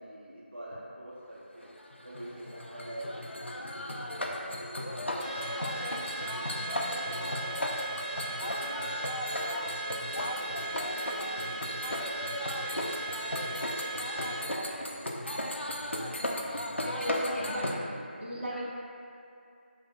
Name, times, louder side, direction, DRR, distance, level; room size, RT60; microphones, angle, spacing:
voice 1, 0.0-1.7 2.0-6.5 6.9-12.3 12.7-15.0, right 1 dB, 65° right, -6 dB, 1.0 m, -47 dB
sound 1, 1.6-17.8, left 1 dB, 80° left, 0.5 m, -35 dB
Car / Alarm, 5.2-14.5, right 2 dB, 30° left, 0.6 m, -38 dB
voice 2, 6.6-7.1 16.8-17.8 18.2-18.6, left 1 dB, 85° right, -6 dB, 1.3 m, -36 dB
7.2 x 2.7 x 2.2 m, 2.5 s
figure-of-eight pair, 165°, 6 cm